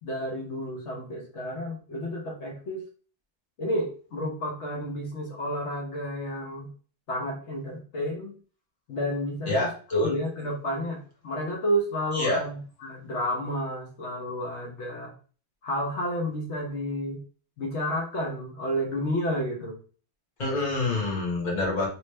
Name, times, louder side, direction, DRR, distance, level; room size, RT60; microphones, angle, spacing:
voice 1, 0.0-2.8 3.6-6.7 7.1-8.3 8.9-15.1 15.6-17.2 17.6-19.8, equal, 80° left, -1 dB, 1.2 m, -31 dB
voice 2, 9.5-10.1 12.1-12.4 20.4-21.9, left 2 dB, 40° left, -3 dB, 1.3 m, -27 dB
3.1 x 3.0 x 3.1 m, 0.40 s
omnidirectional pair, 1.2 m